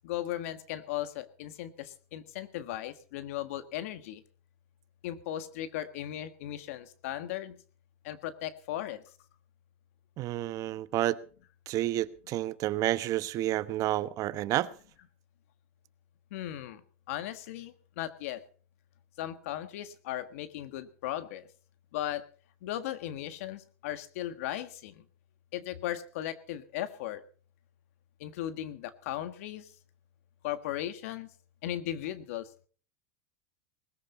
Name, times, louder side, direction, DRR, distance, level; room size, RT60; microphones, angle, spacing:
voice 1, 0.0-4.2 5.0-7.6 8.0-9.0 16.3-16.8 17.1-18.4 19.2-21.5 21.9-22.2 22.6-25.0 25.5-27.2 28.2-29.7 30.4-31.3 31.6-32.7, left 12 dB, 75° left, 1.6 m, -37 dB
voice 2, 10.2-11.2 11.7-14.7, right 14 dB, 50° right, 1.1 m, -30 dB
20.0 x 14.0 x 4.2 m
supercardioid pair, 110°, 8 cm